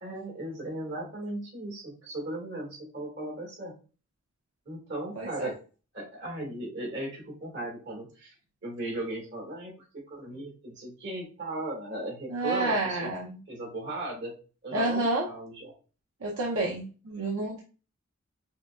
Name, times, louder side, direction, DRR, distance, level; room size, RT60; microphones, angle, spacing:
voice 1, 0.0-3.7 4.7-5.6 5.9-8.3 8.6-13.1 13.5-14.3 14.6-15.7, right 1 dB, 50° right, 0 dB, 1.9 m, -37 dB
voice 2, 5.2-5.5 12.3-13.4 14.7-15.3 16.2-17.6, right 2 dB, 70° right, -2 dB, 0.7 m, -29 dB
5.6 x 2.4 x 2.3 m, 0.35 s
head